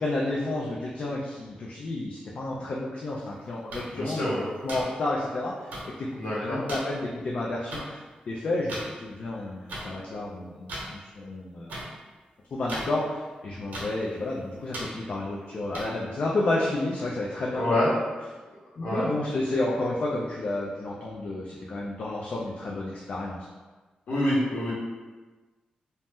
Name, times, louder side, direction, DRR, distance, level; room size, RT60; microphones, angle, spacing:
voice 1, 0.0-4.3 4.6-11.8 12.5-17.8 18.8-23.4, left 2 dB, 45° left, -4 dB, 0.3 m, -31 dB
sound 1, 3.7-3.8 4.7-4.8 5.7-5.8 6.7-6.8 7.7-7.8 8.7-8.8 9.7-9.8 10.7-10.8 11.7-11.8 12.7-12.9 13.7-13.8 14.7-14.8 15.7-15.8, right 1 dB, 85° right, 0.8 m, -35 dB
voice 2, 3.9-4.4 6.2-6.6 17.5-17.9 18.8-19.1 24.1-24.7, left 1 dB, 75° left, -8 dB, 1.1 m, -26 dB
2.7 x 2.1 x 3.4 m, 1.3 s
wide cardioid pair, 170°, 3 cm